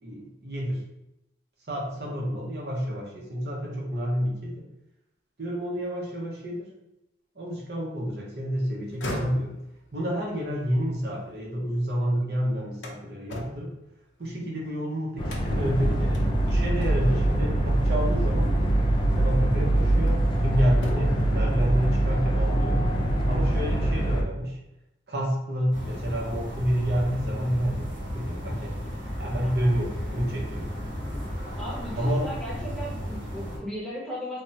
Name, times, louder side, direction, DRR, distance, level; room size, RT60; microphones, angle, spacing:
voice 1, 0.0-0.8 1.7-4.6 5.4-6.7 7.4-9.6 9.9-13.7 14.2-18.5 19.2-22.8 23.2-24.6 25.1-28.8 29.2-30.7 32.0-32.3, equal, 60° right, -3 dB, 0.7 m, -29 dB
sound 1, 8.8-11.9 12.3-14.7 15.3-15.7 16.1-16.3 16.8-17.3 18.5-18.7 19.3-20.4 20.7-21.3, left 1 dB, 80° left, 0.6 m, -40 dB
sound 2, 15.2-24.2, right 1 dB, 25° left, 0.4 m, -23 dB
sound 3, 25.7-33.6, equal, 80° right, 1.1 m, -34 dB
voice 2, 31.6-34.4, equal, 5° left, -8 dB, 0.8 m, -36 dB
3.4 x 2.1 x 2.7 m, 0.88 s
head